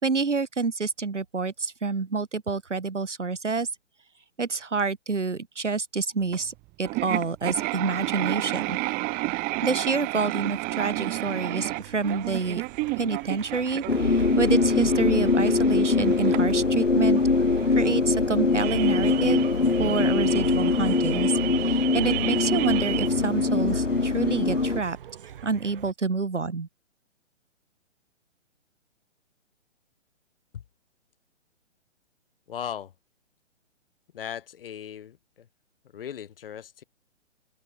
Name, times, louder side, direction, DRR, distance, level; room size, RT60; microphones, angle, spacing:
voice 1, 0.0-3.7 4.4-8.8 9.6-12.6 13.0-17.2 17.7-19.5 19.8-21.3 21.6-25.0 25.4-26.7, right 4 dB, 75° right, 4.1 m, -28 dB
sound 1, 6.3-6.4 6.8-23.1, right 24 dB, 25° right, 4.8 m, -32 dB
sound 2, 10.3-25.9, right 10 dB, 45° right, 5.2 m, -46 dB
sound 3, 13.9-24.8, left 3 dB, 80° left, 2.2 m, -23 dB
voice 2, 32.5-32.9 34.1-35.5 35.9-36.8, left 9 dB, 50° left, 3.8 m, -37 dB
figure-of-eight pair, 130°, 36 cm